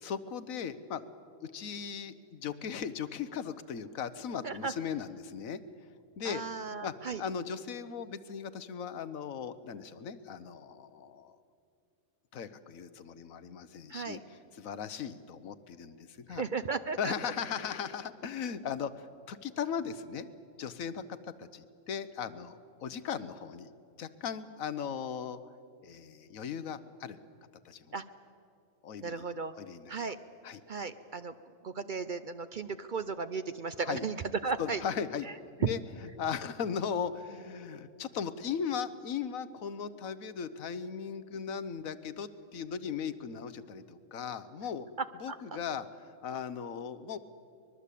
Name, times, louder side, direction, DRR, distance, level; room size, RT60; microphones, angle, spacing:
voice 1, 0.0-1.1 1.4-5.6 6.2-6.4 6.8-6.9 7.2-11.4 12.3-14.2 14.5-16.4 17.0-18.9 19.3-20.3 20.6-23.7 24.0-25.4 25.8-27.2 27.6-27.9 28.8-29.3 29.6-29.9 30.4-30.6 33.8-34.0 34.6-35.3 35.7-35.8 36.2-44.9 45.2-45.9 46.2-47.2, left 7 dB, 85° left, 13 dB, 1.3 m, -37 dB
voice 2, 6.2-7.2 13.9-14.2 16.3-17.3 27.9-28.0 29.0-29.5 29.9-30.2 30.7-31.3 31.6-34.8 35.2-35.3 45.3-45.4, right 4 dB, 50° right, 12 dB, 0.7 m, -35 dB
24.0 x 21.0 x 8.4 m, 2.5 s
omnidirectional pair, 1.4 m